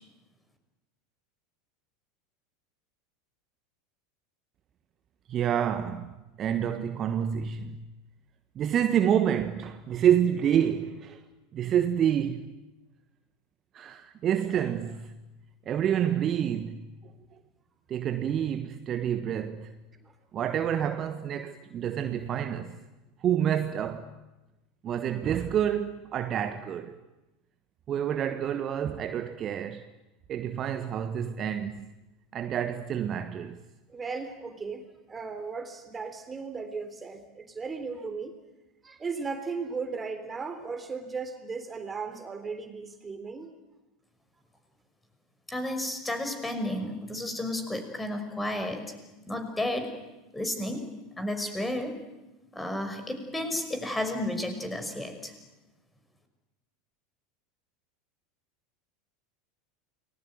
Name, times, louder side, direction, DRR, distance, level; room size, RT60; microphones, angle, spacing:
voice 1, 5.3-7.8 8.5-11.2 11.5-12.5 13.7-15.1 15.7-16.9 17.9-19.7 20.3-22.8 23.2-24.1 24.8-27.0 27.9-29.9 30.3-31.9 32.3-33.6, right 9 dB, 35° right, 1.4 m, -28 dB
voice 2, 33.9-38.3 38.8-43.5, right 4 dB, 20° right, 3.5 m, -36 dB
voice 3, 45.5-48.8 49.3-49.9 50.3-50.9 51.2-52.0 52.5-55.3, left 1 dB, 10° left, 5.6 m, -32 dB
29.0 x 20.5 x 9.3 m
figure-of-eight pair, 80°, 0 cm